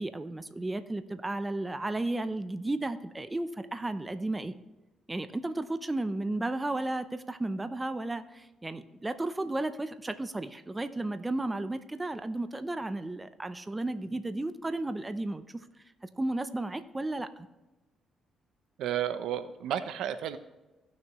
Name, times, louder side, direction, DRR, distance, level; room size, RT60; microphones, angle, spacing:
voice 1, 0.0-4.6 5.1-15.7 16.2-17.5, right 2 dB, 15° right, 11 dB, 0.6 m, -33 dB
voice 2, 18.8-20.4, right 10 dB, 80° right, 11 dB, 0.6 m, -32 dB
16.5 x 6.3 x 3.1 m, 1.1 s
cardioid pair, 90°, 0 cm